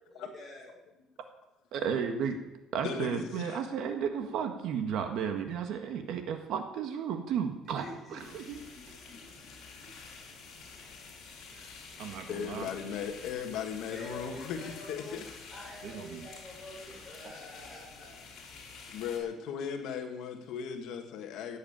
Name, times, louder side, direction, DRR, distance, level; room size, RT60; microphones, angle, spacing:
voice 1, 0.1-0.8 7.8-9.5 13.9-15.2 15.5-18.2, left 1 dB, 5° left, -4 dB, 6.1 m, -47 dB
voice 2, 1.7-2.4 2.7-8.6 11.5-11.7 12.0-12.7 15.8-16.3, right 7 dB, 55° right, 6 dB, 1.7 m, -34 dB
voice 3, 2.8-3.6 12.3-15.2 18.9-21.6, left 7 dB, 65° left, 4 dB, 1.9 m, -37 dB
sound 1, 8.2-19.2, left 4 dB, 45° left, 5.6 m, -49 dB
17.0 x 8.6 x 8.9 m, 0.97 s
cardioid pair, 175°, 0 cm